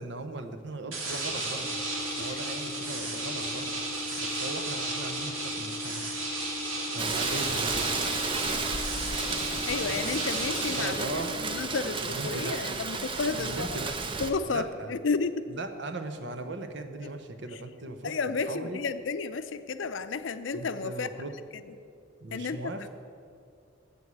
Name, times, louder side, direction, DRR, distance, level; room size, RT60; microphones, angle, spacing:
voice 1, 0.0-1.8 2.2-3.8 4.2-6.1 6.9-8.1 10.7-11.4 12.0-12.8 13.4-14.0 14.5-15.0 15.5-18.1 18.5-18.8 20.5-21.3 22.2-22.9, right 2 dB, 60° right, 7 dB, 0.9 m, -38 dB
sound 1, 0.9-10.9, right 2 dB, 90° right, 2.2 m, -34 dB
sound 2, 1.6-11.6, left 6 dB, 10° left, 0.7 m, -41 dB
Rain, 7.0-14.3, right 4 dB, 25° right, 0.6 m, -33 dB
voice 2, 9.6-13.8 14.2-15.5 17.5-17.6 18.0-21.1 21.5-21.6 22.3-22.7, left 4 dB, 65° left, 11 dB, 0.5 m, -32 dB
8.2 x 7.9 x 8.3 m, 2.4 s
head